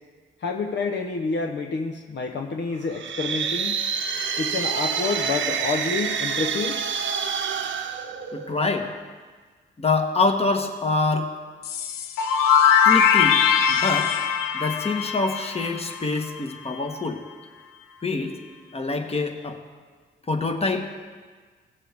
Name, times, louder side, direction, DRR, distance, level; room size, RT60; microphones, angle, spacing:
voice 1, 0.4-3.8 4.4-6.8, left 4 dB, 60° left, 3 dB, 0.9 m, -28 dB
sound 1, 2.8-8.8, right 6 dB, 65° right, 0.9 m, -28 dB
voice 2, 8.3-8.9 9.8-11.3 12.8-13.4 13.7-14.1 14.5-17.2 18.0-18.4 18.7-19.6 20.3-20.9, left 3 dB, 30° left, 5 dB, 1.4 m, -25 dB
sound 2, 11.6-16.4, left 7 dB, 90° left, 0.6 m, -21 dB
17.0 x 7.3 x 3.5 m, 1.5 s
supercardioid pair, 55°, 21 cm